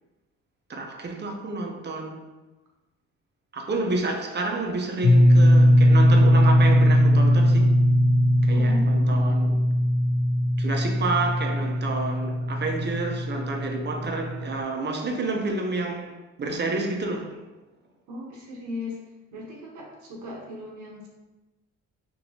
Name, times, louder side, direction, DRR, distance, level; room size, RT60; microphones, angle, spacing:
voice 1, 0.7-2.2 3.5-7.7 8.4-9.5 10.6-17.4, right 3 dB, 35° right, 0.7 m, -29 dB
sound 1, 5.0-14.6, equal, 65° left, 0.6 m, -19 dB
voice 2, 8.5-9.4 18.1-19.0 19.3-21.1, left 2 dB, 80° right, 1.1 m, -37 dB
4.4 x 3.0 x 2.7 m
cardioid pair, 90°, 30 cm